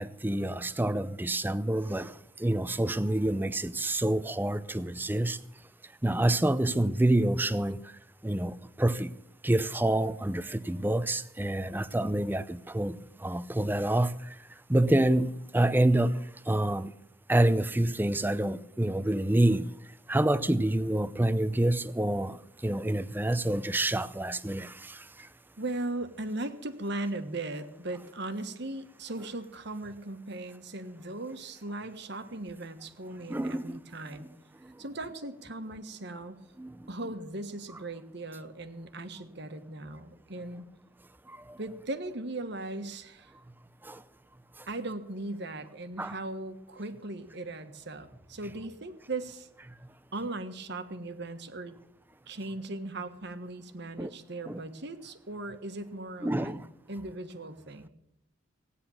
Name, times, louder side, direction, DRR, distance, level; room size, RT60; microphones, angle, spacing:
voice 1, 0.0-5.4 6.0-7.9 8.2-9.1 9.4-14.4 14.7-16.9 17.3-19.7 20.1-25.3 33.3-33.8 34.6-34.7 36.6-36.8 41.3-41.6 43.8-44.0 46.0-46.1 54.0-54.1 54.5-54.6 56.2-56.7, right 1 dB, 10° right, 0.5 m, -27 dB
voice 2, 25.6-34.3 34.8-36.4 36.9-40.6 41.6-43.4 44.7-49.5 50.1-51.8 52.3-56.6 56.9-57.9, right 2 dB, 55° right, 1.4 m, -38 dB
16.5 x 9.8 x 7.1 m
head